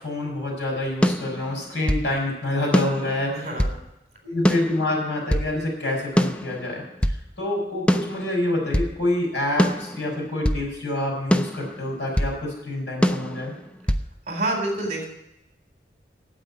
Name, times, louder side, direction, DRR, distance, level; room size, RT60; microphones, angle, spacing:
voice 1, 0.0-3.5 4.2-13.5, left 1 dB, 85° left, -2 dB, 5.5 m, -27 dB
sound 1, 1.0-2.1 2.7-3.8 4.5-5.5 6.2-7.2 7.9-9.0 9.6-10.6 11.3-12.4 13.0-14.1, equal, 5° left, 0.4 m, -24 dB
voice 2, 3.3-3.8 14.3-15.1, right 2 dB, 40° right, 1 dB, 4.0 m, -27 dB
9.1 x 8.1 x 8.6 m, 0.84 s
head